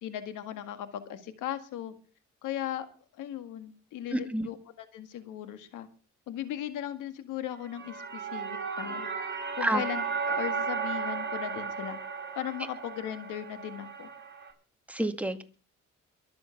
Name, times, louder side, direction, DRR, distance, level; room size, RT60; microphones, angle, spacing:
voice 1, 0.0-1.9 2.4-2.9 3.2-5.9 6.3-9.1 9.5-12.0 12.4-14.1, left 11 dB, 90° left, 10 dB, 1.9 m, -37 dB
voice 2, 4.1-4.5 9.6-9.8 14.9-15.4, right 1 dB, 5° right, 7 dB, 2.1 m, -28 dB
sound 1, 7.6-14.5, right 5 dB, 35° right, 5.3 m, -35 dB
23.0 x 7.8 x 5.9 m, 0.38 s
cardioid pair, 90°, 30 cm